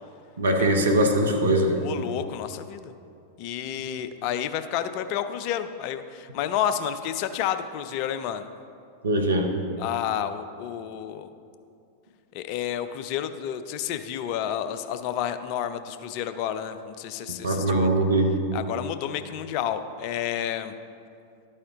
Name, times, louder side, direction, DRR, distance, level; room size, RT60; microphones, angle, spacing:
voice 1, 0.4-1.8 9.0-9.5 17.4-18.3, right 1 dB, 70° right, 3 dB, 0.9 m, -21 dB
voice 2, 1.7-2.9 3.4-8.5 9.8-11.3 12.3-17.9 18.5-20.7, left 9 dB, 45° left, 10 dB, 0.4 m, -30 dB
12.0 x 4.3 x 3.6 m, 2.4 s
figure-of-eight pair, 90°, 0 cm